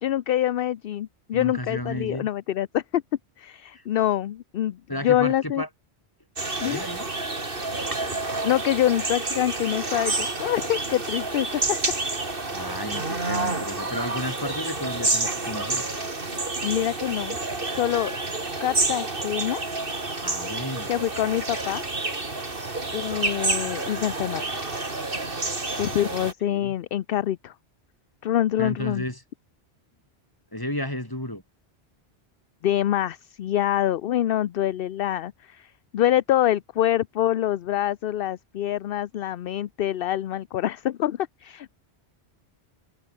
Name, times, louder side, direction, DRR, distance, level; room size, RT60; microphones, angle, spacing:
voice 1, 0.0-3.0 3.4-5.6 6.6-6.8 8.4-11.6 16.6-17.4 17.7-18.1 18.6-19.6 20.9-21.8 22.9-24.6 25.7-27.5 28.2-29.0 32.6-41.7, left 12 dB, 65° left, 0.7 m, -25 dB
voice 2, 1.3-2.3 4.9-5.7 6.6-7.0 12.5-15.9 20.2-20.9 26.2-26.7 28.6-29.2 30.5-31.4, left 1 dB, 20° left, 4.2 m, -33 dB
sound 1, 6.4-26.3, right 2 dB, 55° right, 3.2 m, -29 dB
omnidirectional pair, 1.1 m